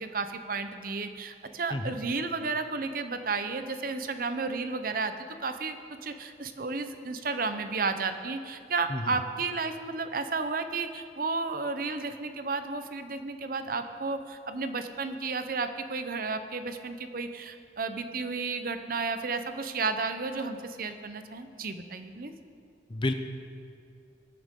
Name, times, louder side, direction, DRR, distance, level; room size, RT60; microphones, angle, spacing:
voice 1, 0.0-5.1 5.4-5.8 6.0-22.3, right 4 dB, 50° right, 8 dB, 0.7 m, -32 dB
voice 2, 1.7-2.0 8.9-9.1 22.9-23.1, left 2 dB, 25° left, 7 dB, 0.6 m, -30 dB
21.0 x 9.0 x 3.7 m, 2.4 s
head